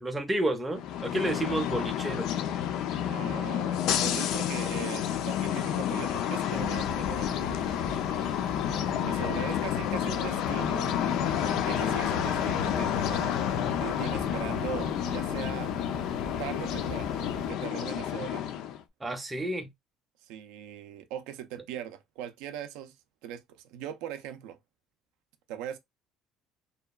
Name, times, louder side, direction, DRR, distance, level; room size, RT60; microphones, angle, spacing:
voice 1, 0.0-2.3 19.0-19.7, right 1 dB, 10° right, 0.4 m, -30 dB
sound 1, 0.7-18.8, left 10 dB, 60° left, 0.3 m, -30 dB
voice 2, 3.1-7.6 8.0-8.3 9.0-10.9 11.6-13.3 13.8-15.7 16.4-17.1 17.5-18.4 20.3-22.9 23.2-24.6 25.5-25.8, right 10 dB, 85° right, 0.4 m, -40 dB
sound 2, 6.5-17.5, left 3 dB, 80° left, 0.7 m, -38 dB
2.7 x 2.2 x 2.2 m
cardioid pair, 160°, 0 cm